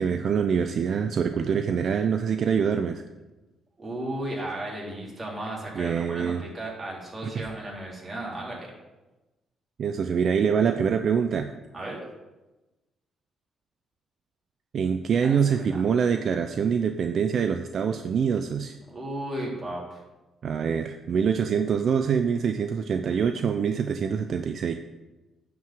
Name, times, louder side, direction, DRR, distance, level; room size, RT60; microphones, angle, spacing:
voice 1, 0.0-3.0 5.7-6.4 7.2-7.5 9.8-11.5 14.7-18.8 20.4-24.7, right 7 dB, 60° right, 8 dB, 0.5 m, -25 dB
voice 2, 3.8-8.7 11.7-12.0 15.2-15.8 18.9-20.0, right 1 dB, 20° right, -3 dB, 3.2 m, -35 dB
9.3 x 4.8 x 7.4 m, 1.1 s
cardioid pair, 90°, 0 cm